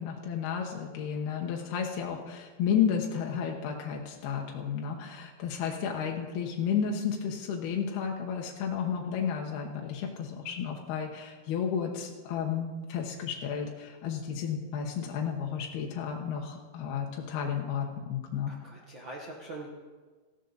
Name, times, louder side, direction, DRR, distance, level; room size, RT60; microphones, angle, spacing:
voice 1, 0.0-18.5, left 7 dB, 80° left, 0 dB, 3.1 m, -32 dB
voice 2, 18.5-19.7, right 2 dB, 80° right, -2 dB, 1.0 m, -43 dB
18.0 x 14.5 x 4.0 m, 1.4 s
omnidirectional pair, 4.5 m